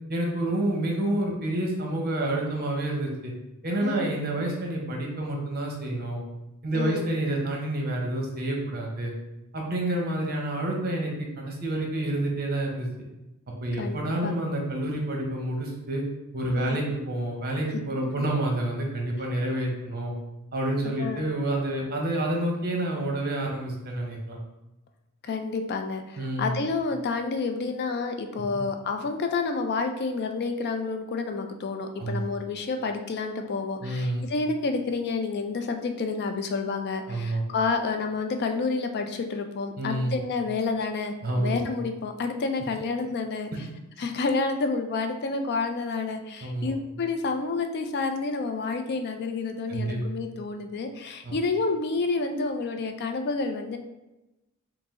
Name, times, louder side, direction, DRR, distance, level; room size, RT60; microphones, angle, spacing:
voice 1, 0.1-3.3 3.6-6.2 6.6-9.1 9.5-12.9 13.6-16.0 16.3-20.1 20.5-24.4 26.2-26.6 28.5-28.6 32.0-32.2 33.8-34.2 37.1-37.4 39.8-40.2 41.2-41.6 46.4-46.7 49.7-50.0 51.2-51.3, right 1 dB, 45° right, 0 dB, 0.9 m, -28 dB
voice 2, 3.8-4.2 6.7-7.1 13.8-14.3 16.6-16.8 21.0-21.2 25.2-43.7 44.0-53.8, left 4 dB, 50° left, 6 dB, 0.4 m, -29 dB
4.8 x 2.0 x 3.6 m, 0.99 s
head